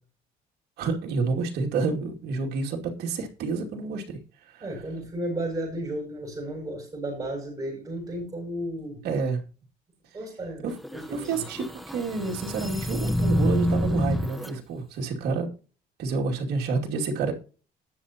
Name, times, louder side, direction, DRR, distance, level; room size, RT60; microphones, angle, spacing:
voice 1, 0.8-4.7 9.0-9.4 10.6-10.8 11.1-15.5 16.0-17.3, right 4 dB, 75° right, -1 dB, 2.6 m, -29 dB
voice 2, 4.6-9.0 10.1-11.4, right 1 dB, 25° right, -2 dB, 7.2 m, -33 dB
sound 1, 10.8-14.5, left 1 dB, ahead, 1.0 m, -28 dB
20.0 x 7.0 x 3.0 m, 0.37 s
cardioid pair, 110°, 17 cm